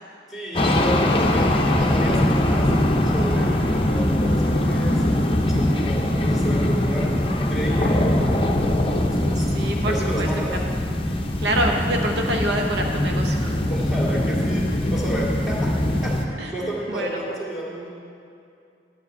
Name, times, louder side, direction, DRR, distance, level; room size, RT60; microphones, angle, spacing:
voice 1, 0.3-2.7 3.1-7.1 7.5-9.5 9.8-10.5 13.7-15.7 16.0-18.0, right 1 dB, ahead, -5 dB, 2.2 m, -31 dB
sound 1, 0.5-16.2, left 1 dB, 30° left, 0.7 m, -22 dB
voice 2, 9.5-10.6 11.4-13.6 16.4-17.4, right 1 dB, 65° right, 2 dB, 0.8 m, -27 dB
11.0 x 5.2 x 8.1 m, 2.5 s
head